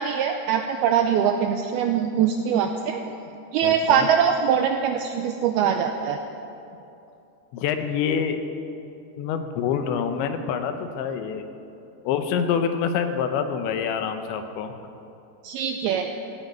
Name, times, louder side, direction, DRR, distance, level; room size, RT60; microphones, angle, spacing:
voice 1, 0.0-3.2 3.5-6.2 15.4-16.1, right 8 dB, 85° right, 5 dB, 2.2 m, -22 dB
voice 2, 3.6-4.1 7.5-8.4 9.2-11.4 12.1-14.8, left 7 dB, 85° left, 8 dB, 3.2 m, -26 dB
16.5 x 9.3 x 9.4 m, 2.7 s
omnidirectional pair, 5.2 m